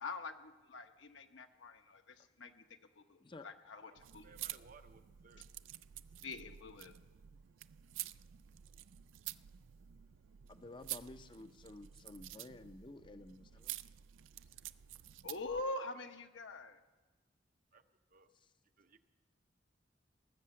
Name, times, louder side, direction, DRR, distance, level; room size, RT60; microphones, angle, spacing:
voice 1, 0.0-2.6 3.0-4.3 6.2-6.9 15.2-16.8, left 2 dB, 75° left, 6 dB, 1.0 m, -45 dB
sound 1, 3.9-15.6, right 14 dB, 90° right, 0.3 m, -49 dB
voice 2, 4.0-5.5 17.7-17.8 18.1-18.3 18.8-19.0, right 4 dB, 45° right, 9 dB, 0.6 m, -61 dB
voice 3, 10.5-13.7, left 2 dB, 25° left, 10 dB, 0.5 m, -52 dB
19.0 x 6.7 x 7.5 m, 1.2 s
head